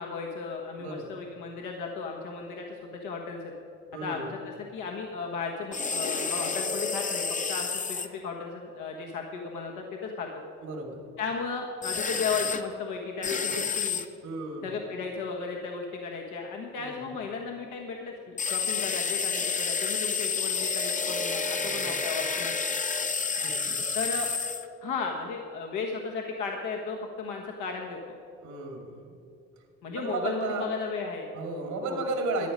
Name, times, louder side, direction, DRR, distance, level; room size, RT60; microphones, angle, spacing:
voice 1, 0.0-3.4 4.0-10.4 11.2-14.0 14.6-22.8 23.9-24.3 24.8-28.2 29.8-31.3 31.9-32.0, left 4 dB, 85° left, 0 dB, 1.3 m, -35 dB
voice 2, 0.8-1.1 3.9-4.3 10.6-11.0 14.2-14.7 16.8-17.1 21.6-21.9 23.4-23.5 23.9-24.0 28.4-29.0 29.9-30.7 31.3-32.5, right 3 dB, 80° right, 2 dB, 2.4 m, -34 dB
sound 1, 5.7-8.1 11.8-12.6 13.2-14.1 18.4-24.7, left 5 dB, 25° left, 0.8 m, -30 dB
13.5 x 10.0 x 5.4 m, 2.7 s
cardioid pair, 90°, 30 cm